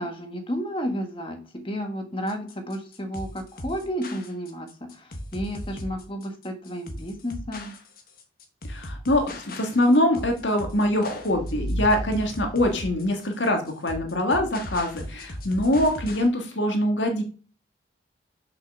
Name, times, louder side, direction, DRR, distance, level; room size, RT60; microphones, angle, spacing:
voice 1, 0.0-7.7, equal, 30° left, 5 dB, 1.6 m, -32 dB
sound 1, 2.3-16.3, left 1 dB, 50° left, 1.4 m, -38 dB
voice 2, 8.6-17.2, left 1 dB, 80° left, 4 dB, 1.8 m, -23 dB
sound 2, 10.7-13.0, equal, 20° right, 1.1 m, -33 dB
6.7 x 5.8 x 6.3 m, 0.38 s
head